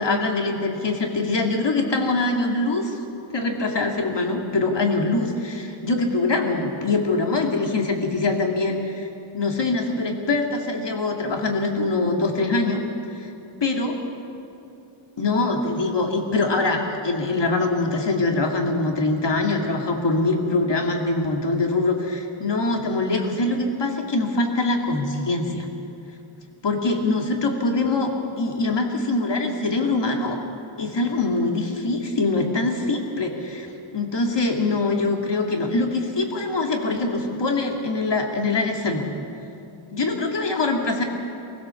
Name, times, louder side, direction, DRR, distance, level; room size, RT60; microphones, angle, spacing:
voice 1, 0.0-3.0 3.3-9.1 9.3-12.8 13.2-13.3 13.6-14.0 15.2-25.7 26.6-30.4 30.8-33.7 33.9-39.1 39.9-41.0, left 2 dB, 55° left, 2 dB, 2.6 m, -23 dB
24.0 x 16.0 x 7.1 m, 2.7 s
wide cardioid pair, 100°, 50 cm